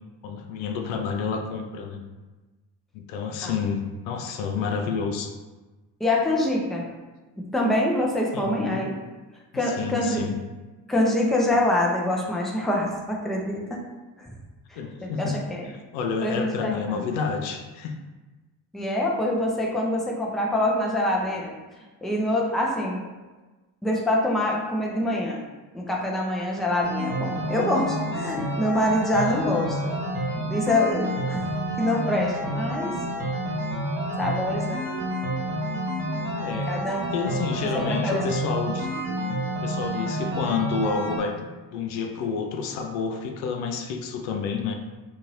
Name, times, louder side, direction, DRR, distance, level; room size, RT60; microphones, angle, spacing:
voice 1, 0.2-2.0 2.9-5.3 8.3-8.8 9.5-10.4 14.8-18.0 36.3-36.7 37.1-38.9 39.6-41.4 41.7-44.7, left 5 dB, 70° left, 4 dB, 0.5 m, -29 dB
voice 2, 6.0-6.9 7.5-8.9 9.5-10.2 10.9-13.8 14.7-15.7 16.2-17.0 18.7-21.6 22.0-23.0 23.8-25.4 25.7-29.9 30.4-31.5 31.8-33.0 34.2-34.8 36.7-37.4 37.7-38.2, left 1 dB, ahead, -2 dB, 0.6 m, -25 dB
sound 1, 26.8-41.2, right 1 dB, 60° right, 1.3 m, -29 dB
2.7 x 2.6 x 3.0 m, 1.2 s
hypercardioid pair, 50°, 48 cm